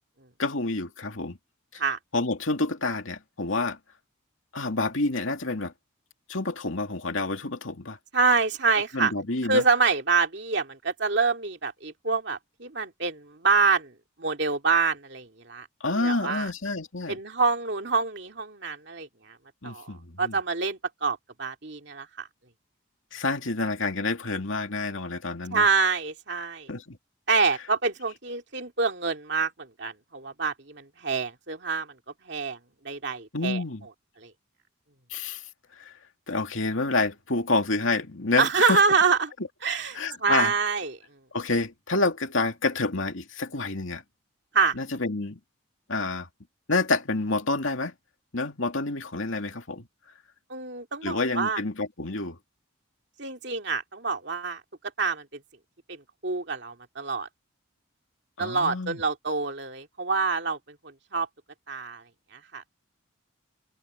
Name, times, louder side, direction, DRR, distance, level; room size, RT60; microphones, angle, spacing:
voice 1, 0.4-1.4 1.7-1.8 2.1-3.8 4.5-5.7 6.3-8.0 8.9-9.6 15.8-17.2 19.6-20.4 23.1-25.6 26.7-27.0 33.3-33.8 35.1-35.4 35.8-35.9 36.3-38.8 39.9-40.5 41.3-44.0 44.8-45.4 45.9-46.3 46.7-47.9 48.3-49.8 51.0-52.4 58.4-59.0, left 3 dB, 70° left, 2.5 m, -28 dB
voice 2, 8.1-9.1 9.4-13.9 14.2-15.7 15.9-16.5 17.1-19.4 19.6-22.3 25.5-26.7 27.3-31.9 32.3-32.6 32.8-33.6 34.2-34.3 38.4-39.3 39.6-41.0 44.5-44.7 50.5-51.6 53.2-54.6 55.0-55.2 55.9-56.0 56.2-57.3 58.4-60.6 61.1-61.3 61.7-62.0 62.3-62.7, right 4 dB, 55° right, 2.4 m, -26 dB
head